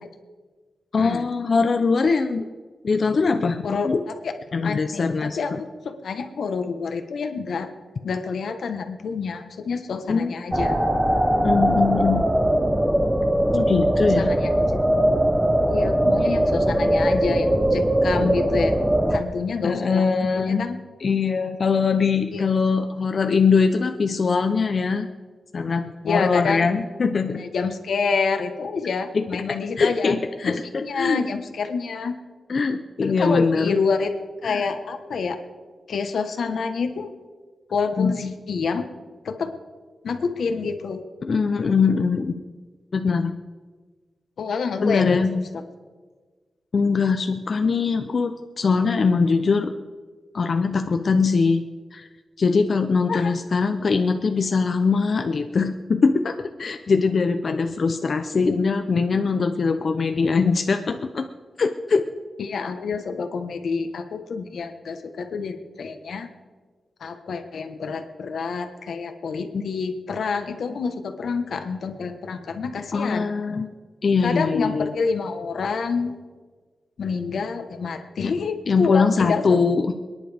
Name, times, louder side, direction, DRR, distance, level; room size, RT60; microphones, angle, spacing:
voice 1, 0.9-2.5 2.8-4.0 4.5-5.6 10.1-10.3 11.4-12.2 13.5-14.3 19.6-20.7 21.0-25.1 25.5-27.4 29.1-31.2 32.5-33.8 34.4-34.7 38.0-38.3 41.2-42.4 42.9-43.3 44.8-45.3 46.7-49.7 50.3-51.6 51.9-52.0 52.4-61.3 61.6-62.1 69.5-69.6 72.9-73.7 74.0-74.9 78.2-78.3 78.7-79.9, left 4 dB, 45° left, 7 dB, 0.6 m, -22 dB
voice 2, 4.6-7.7 8.0-10.8 14.2-14.8 15.7-18.7 19.1-20.8 22.3-22.4 26.0-26.7 27.4-30.1 30.4-32.2 33.0-34.1 34.4-35.4 35.9-37.1 37.7-38.9 39.2-39.5 40.0-41.0 44.4-45.6 53.1-53.3 62.4-66.3 67.0-73.3 74.2-76.2 77.0-79.6, left 5 dB, 80° left, 7 dB, 1.2 m, -27 dB
sound 1, 10.5-19.2, right 1 dB, 10° right, 0.7 m, -20 dB
27.5 x 10.5 x 3.5 m, 1.4 s
wide cardioid pair, 160°, 0 cm